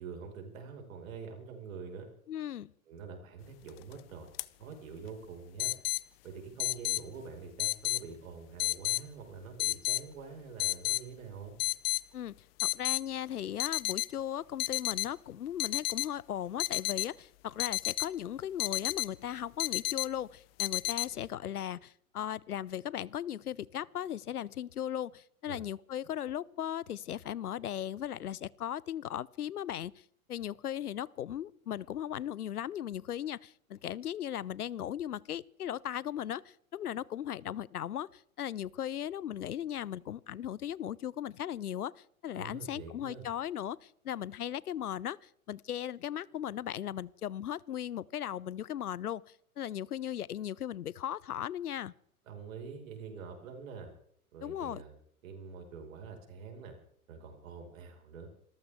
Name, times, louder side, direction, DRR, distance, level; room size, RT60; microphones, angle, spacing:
voice 1, 0.0-2.1 2.9-4.3 4.6-5.7 6.2-11.6 25.4-25.6 42.3-43.3 52.3-53.9 54.3-54.9 55.2-56.8 57.1-58.3, right 5 dB, 65° right, 4.9 m, -45 dB
voice 2, 2.3-2.7 12.1-30.0 30.3-41.9 42.2-49.2 49.6-51.9 54.4-54.8, left 10 dB, 85° left, 0.6 m, -37 dB
sound 1, 3.7-3.9 4.4-4.5 5.6-6.0 6.6-7.0 7.6-8.0 8.6-9.0 9.6-10.0 10.6-11.0 11.6-12.0 12.6-13.0 13.6-14.1 14.6-15.1 15.6-16.1 16.6-17.1 17.6-18.1 18.6-19.1 19.6-20.1 20.6-21.1, left 20 dB, 45° left, 0.6 m, -31 dB
27.5 x 14.5 x 3.5 m
hypercardioid pair, 105°, 43 cm